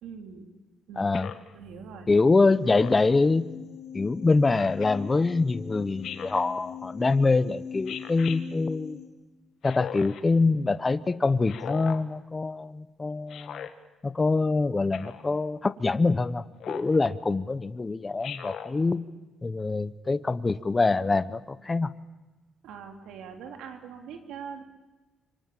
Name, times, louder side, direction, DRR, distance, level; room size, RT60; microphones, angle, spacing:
voice 1, 0.0-0.5 0.9-1.1 1.5-2.1 22.6-24.6, right 6 dB, 85° right, 4 dB, 2.9 m, -42 dB
voice 2, 1.0-1.3 2.1-3.5 3.9-9.0 9.6-13.6 14.0-19.0 19.4-21.9, left 3 dB, 25° left, 14 dB, 0.8 m, -25 dB
Speech synthesizer, 1.1-1.5 2.7-3.1 4.5-4.9 6.0-6.5 7.9-8.4 9.6-10.2 11.5-12.0 13.3-13.7 14.9-15.3 16.6-17.0 18.2-18.7, left 9 dB, 70° left, 1.6 m, -38 dB
sound 1, 2.3-9.1, left 7 dB, 90° left, 4.0 m, -42 dB
26.5 x 24.5 x 7.3 m, 1.2 s
cardioid pair, 90°, 0 cm